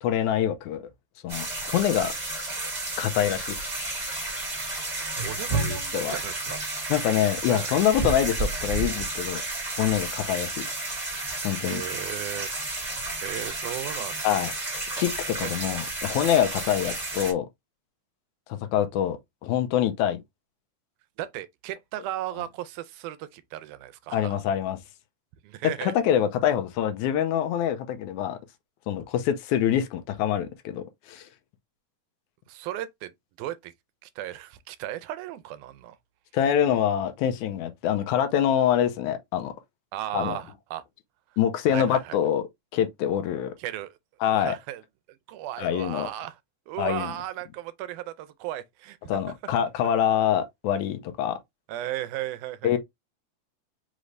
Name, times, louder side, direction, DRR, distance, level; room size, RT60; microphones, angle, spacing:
voice 1, 0.0-0.8 1.2-2.1 3.0-3.6 5.6-6.2 6.9-9.4 9.8-10.7 11.4-11.8 14.2-14.5 15.0-17.5 18.5-20.2 24.1-24.8 25.8-28.4 28.9-31.3 36.3-39.5 40.1-40.4 41.4-42.4 42.7-43.5 44.2-44.6 45.6-46.1 46.8-47.1 49.1-51.4 52.6-52.8, left 10 dB, 85° left, 2.1 m, -25 dB
sound 1, 1.3-17.3, right 2 dB, 25° right, 1.1 m, -31 dB
voice 2, 5.0-6.6 7.5-7.7 11.6-12.5 13.2-14.5 15.4-15.5 21.2-24.4 25.4-25.9 32.5-33.1 33.4-33.7 34.0-36.0 39.9-40.8 41.7-42.2 43.6-44.0 44.3-44.8 45.3-46.4 46.7-49.0 51.7-52.8, right 13 dB, 90° right, 2.0 m, -35 dB
5.3 x 2.5 x 3.2 m
omnidirectional pair, 3.5 m